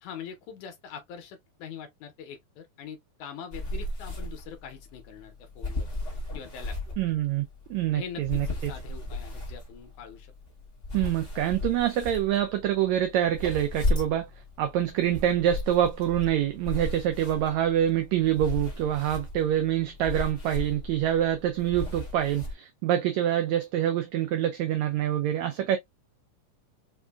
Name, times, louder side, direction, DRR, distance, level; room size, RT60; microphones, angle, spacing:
voice 1, 0.0-5.9 6.3-6.8 7.9-10.3, left 7 dB, 75° left, 1.9 m, -43 dB
sound 1, 3.5-22.5, left 2 dB, 50° left, 0.6 m, -36 dB
voice 2, 7.0-7.4 7.7-8.7 10.9-14.3 14.6-25.8, right 11 dB, 90° right, 1.6 m, -26 dB
5.2 x 2.4 x 2.3 m
omnidirectional pair, 3.8 m